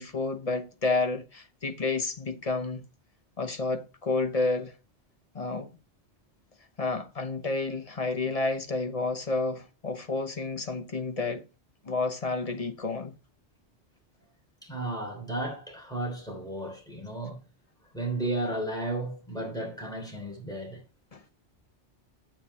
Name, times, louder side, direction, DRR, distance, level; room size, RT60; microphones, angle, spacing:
voice 1, 0.0-2.9 3.4-4.7 5.3-5.8 6.8-11.5 11.8-13.2 21.1-21.2, left 3 dB, 35° left, 0.9 m, -30 dB
voice 2, 14.6-17.4 17.9-20.8, right 2 dB, 5° left, 3.2 m, -33 dB
9.0 x 8.4 x 3.1 m
omnidirectional pair, 1.2 m